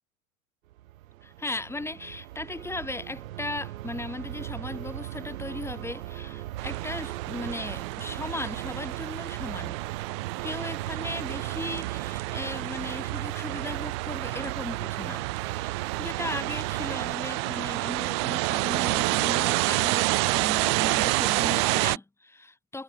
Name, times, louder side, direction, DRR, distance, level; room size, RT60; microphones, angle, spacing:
sound 1, 0.7-17.2, right 14 dB, 65° right, 3.1 m, -38 dB
voice 1, 1.2-9.8 10.4-15.2 15.5-22.8, left 2 dB, 5° left, 2.9 m, -37 dB
sound 2, 6.6-22.0, right 29 dB, 20° right, 0.3 m, -29 dB
hypercardioid pair, 125°, 44 cm